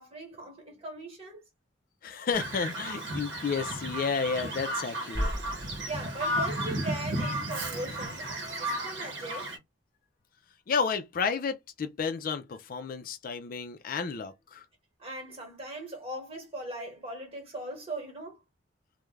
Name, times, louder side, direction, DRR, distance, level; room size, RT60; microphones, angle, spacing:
voice 1, 0.0-1.4 5.9-9.5 15.0-18.4, right 2 dB, 30° right, 1.2 m, -39 dB
voice 2, 2.0-5.3 10.7-14.6, left 5 dB, 50° left, 0.3 m, -31 dB
Bird vocalization bird call bird song, 2.3-9.6, right 1 dB, 70° right, 0.9 m, -34 dB
sound 1, 5.1-7.0, equal, 5° left, 0.9 m, -36 dB
2.3 x 2.1 x 3.1 m
head